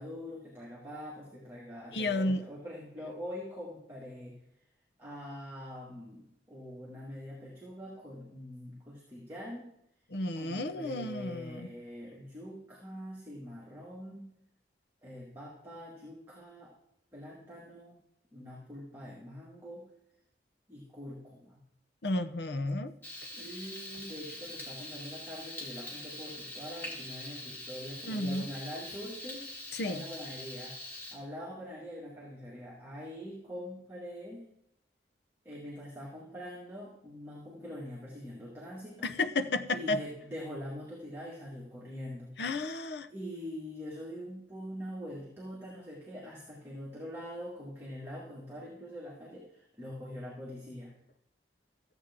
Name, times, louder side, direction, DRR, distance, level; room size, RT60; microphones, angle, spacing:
voice 1, 0.0-4.3 5.0-9.7 10.4-14.3 15.0-16.7 17.1-18.0 18.3-19.8 20.7-21.6 23.3-29.4 29.8-30.7 31.1-34.4 35.4-39.1 39.7-42.3 42.7-42.8 43.1-50.9, equal, 15° right, -6 dB, 2.2 m, -44 dB
voice 2, 1.9-2.4 10.1-11.7 22.0-22.9 28.1-28.5 29.7-30.0 39.0-40.0 42.4-43.1, left 2 dB, 70° left, 11 dB, 0.7 m, -32 dB
Frying (food), 23.0-31.1, left 1 dB, 10° left, 2.3 m, -44 dB
14.5 x 8.1 x 3.7 m, 0.76 s
head